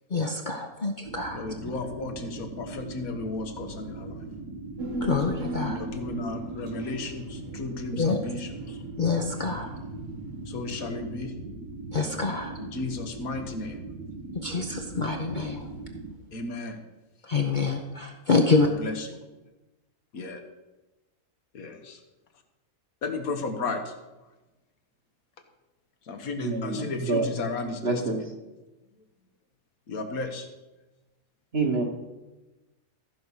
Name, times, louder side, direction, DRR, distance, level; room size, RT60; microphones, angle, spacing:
voice 1, 0.1-1.4 5.0-5.8 7.9-8.2 8.9-9.7 11.9-12.5 14.3-15.7 17.2-18.7, left 4 dB, 40° left, 2 dB, 0.8 m, -26 dB
sound 1, 1.0-16.1, right 3 dB, 80° right, 1.7 m, -40 dB
voice 2, 1.3-4.3 5.7-8.8 10.5-11.3 12.6-13.8 16.3-16.8 18.8-19.2 20.1-20.4 21.5-22.0 23.0-23.9 26.1-28.2 29.9-30.5, left 3 dB, 75° left, 5 dB, 1.6 m, -34 dB
Human voice, 4.8-9.4 9.7-9.8, equal, 60° right, 1.5 m, -36 dB
voice 3, 26.4-27.3 27.8-28.2 31.5-31.8, right 3 dB, 45° right, 2 dB, 1.6 m, -27 dB
14.0 x 5.4 x 6.3 m, 1.1 s
omnidirectional pair, 1.5 m